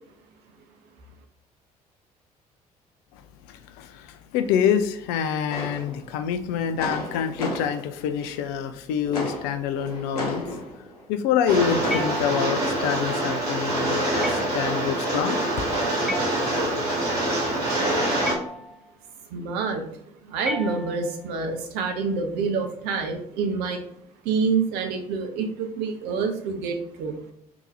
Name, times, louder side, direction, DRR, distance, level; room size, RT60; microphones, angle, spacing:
voice 1, 3.5-10.5 11.1-15.4 15.7-15.8, left 8 dB, 60° left, 9 dB, 0.4 m, -26 dB
sound 1, 5.5-8.8 9.0-11.0 11.5-12.5 13.3-13.4, left 1 dB, 85° left, 0.7 m, -34 dB
Rain, 11.5-18.3, right 1 dB, 80° right, 1.2 m, -25 dB
sound 2, 11.9-12.8 14.2-14.8 16.1-16.9 18.2-19.0 20.4-21.3, left 1 dB, ahead, 0.4 m, -35 dB
voice 2, 19.3-19.9 20.2-23.8 24.2-27.2, right 5 dB, 60° right, 5 dB, 0.7 m, -27 dB
3.8 x 2.9 x 2.6 m, 0.73 s
figure-of-eight pair, 50°, 19 cm